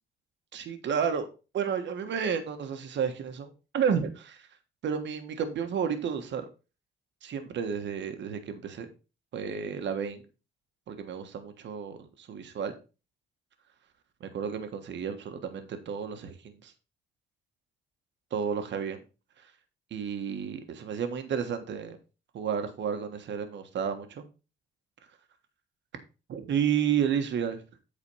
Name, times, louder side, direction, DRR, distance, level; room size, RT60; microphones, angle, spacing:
voice 1, 0.5-1.3 1.5-4.5 4.8-6.5 7.2-8.9 9.3-10.2 10.9-12.7 14.2-16.7 18.3-19.0 19.4-19.5 19.9-22.0 22.3-24.2 26.3-27.6, right 7 dB, 65° right, 7 dB, 1.4 m, -31 dB
8.7 x 4.1 x 5.5 m, 0.31 s
cardioid pair, 90°, 20 cm